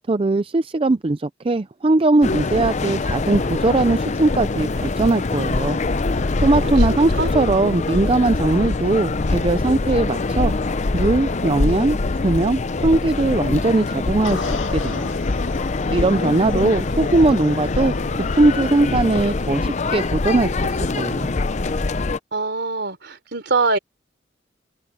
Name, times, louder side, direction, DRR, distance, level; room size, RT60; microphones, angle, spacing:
voice 1, 0.0-5.8 6.4-10.5 10.9-15.1 15.9-21.3, right 2 dB, 30° right, 0.5 m, -20 dB
sound 1, 2.2-22.2, left 3 dB, 35° left, 0.6 m, -23 dB
voice 2, 6.6-7.3 16.1-16.7 22.3-23.8, right 3 dB, 60° right, 3.7 m, -25 dB
sound 2, 14.2-18.6, left 3 dB, 85° left, 2.1 m, -34 dB
head